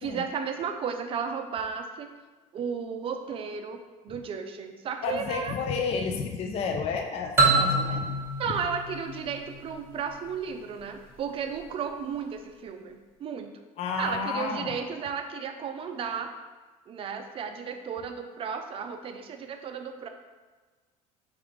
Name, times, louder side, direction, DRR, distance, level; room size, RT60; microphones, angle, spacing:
voice 1, 0.0-2.1 2.5-5.6 8.4-13.5 14.0-16.3 16.9-20.1, right 6 dB, 35° right, 6 dB, 0.5 m, -34 dB
voice 2, 5.0-8.2 13.8-14.8, left 5 dB, 40° left, 4 dB, 0.4 m, -31 dB
sound 1, 7.4-10.1, right 3 dB, 15° right, 1.0 m, -26 dB
4.8 x 3.5 x 3.1 m, 1.3 s
cardioid pair, 120°, 16 cm